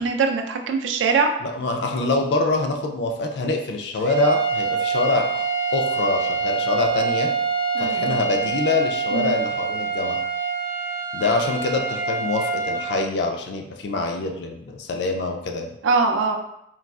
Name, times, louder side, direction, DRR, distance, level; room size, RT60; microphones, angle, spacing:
voice 1, 0.0-1.3 7.7-8.2 9.1-9.3 15.8-16.4, right 4 dB, 85° right, 4 dB, 0.4 m, -22 dB
voice 2, 1.4-5.4 5.7-7.3 7.8-10.2 11.1-15.7, left 2 dB, 65° left, 3 dB, 0.4 m, -25 dB
sound 1, 4.0-12.9, right 5 dB, 45° right, 0.7 m, -25 dB
3.8 x 2.3 x 2.3 m, 0.82 s
head